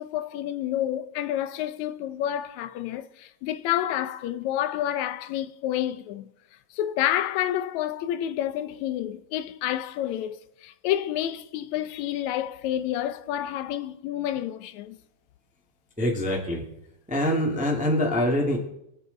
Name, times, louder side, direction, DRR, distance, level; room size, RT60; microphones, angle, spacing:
voice 1, 0.0-6.3 6.7-15.0, left 12 dB, 80° left, 2.0 m, -29 dB
voice 2, 16.0-16.6 17.1-18.6, left 1 dB, 5° right, 1.4 m, -24 dB
22.5 x 8.1 x 4.0 m
omnidirectional pair, 3.4 m